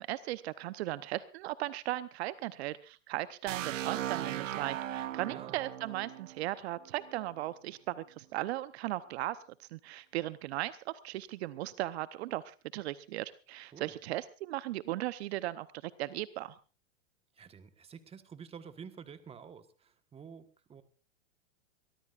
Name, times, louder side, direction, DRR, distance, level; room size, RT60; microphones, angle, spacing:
voice 1, 0.0-16.6, right 16 dB, 55° right, 14 dB, 0.9 m, -37 dB
sound 1, 3.5-7.3, right 12 dB, 80° right, 1.1 m, -38 dB
voice 2, 5.3-5.6 13.7-13.9 17.3-20.8, right 6 dB, 15° right, 10 dB, 1.4 m, -50 dB
23.5 x 18.0 x 2.5 m, 0.34 s
hypercardioid pair, 125°, 38 cm